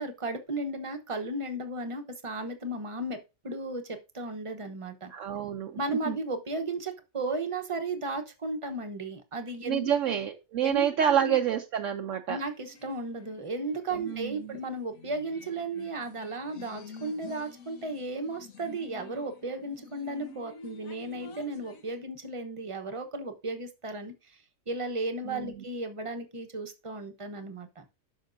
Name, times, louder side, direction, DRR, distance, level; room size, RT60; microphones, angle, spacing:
voice 1, 0.0-3.2 3.4-5.1 5.8-9.9 10.6-11.4 12.3-27.8, right 2 dB, 25° right, 6 dB, 0.9 m, -35 dB
voice 2, 5.1-5.8 6.1-6.2 9.7-12.4 13.9-14.6 25.3-25.6, right 9 dB, 70° right, 4 dB, 1.0 m, -28 dB
sound 1, 12.5-22.0, left 4 dB, 75° left, 1.6 m, -49 dB
10.5 x 6.2 x 2.6 m, 0.27 s
omnidirectional pair, 1.5 m